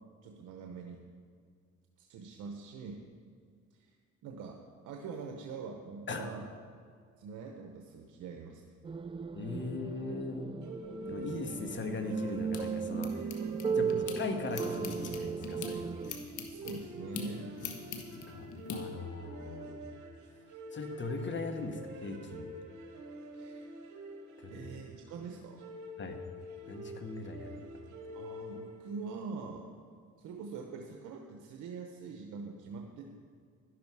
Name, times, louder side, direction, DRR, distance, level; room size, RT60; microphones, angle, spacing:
voice 1, 0.2-1.0 2.0-3.1 3.8-3.9 4.2-4.6 4.8-6.5 7.2-8.6 13.7-14.1 16.5-17.6 23.3-23.7 24.5-25.6 28.1-29.7 30.2-33.1, right 5 dB, 90° right, 3 dB, 0.9 m, -44 dB
sound 1, 8.8-16.1, right 6 dB, 20° right, 0.3 m, -36 dB
voice 2, 9.3-10.5 11.0-13.3 13.7-16.2 18.1-19.8 20.7-22.5 24.4-24.7 26.0-26.2 26.7-27.7, left 3 dB, 40° left, 6 dB, 1.4 m, -39 dB
sound 2, 10.6-29.1, equal, 75° right, 1.7 m, -46 dB
sound 3, 11.8-14.2 14.5-18.8, left 6 dB, 75° left, 1.5 m, -44 dB
11.5 x 11.0 x 4.7 m, 2.2 s
cardioid pair, 90°, 30 cm